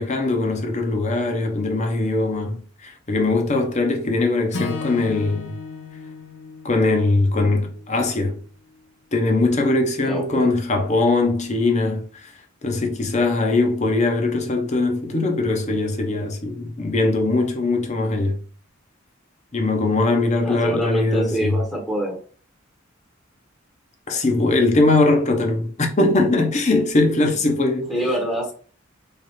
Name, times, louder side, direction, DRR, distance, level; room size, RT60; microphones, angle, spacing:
voice 1, 0.0-5.6 6.6-8.4 9.1-12.2 12.6-18.4 19.5-21.6 24.1-27.9, left 2 dB, 35° left, 0.8 m, -21 dB
Acoustic guitar / Strum, 4.5-8.8, left 4 dB, 65° left, 0.8 m, -35 dB
voice 2, 10.0-10.5 20.4-22.2 27.9-28.5, right 1 dB, ahead, 0.9 m, -25 dB
3.3 x 2.5 x 4.2 m
head